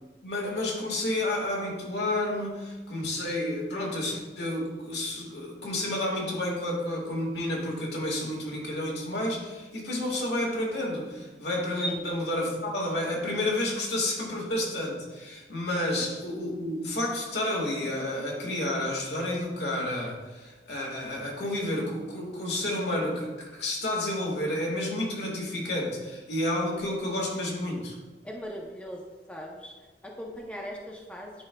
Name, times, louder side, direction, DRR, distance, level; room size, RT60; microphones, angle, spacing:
voice 1, 0.2-28.0, left 1 dB, 75° left, -1 dB, 1.6 m, -30 dB
voice 2, 28.2-29.0 29.3-29.7 30.0-31.3, equal, 5° left, -1 dB, 0.6 m, -39 dB
9.6 x 4.7 x 2.2 m, 1.2 s
head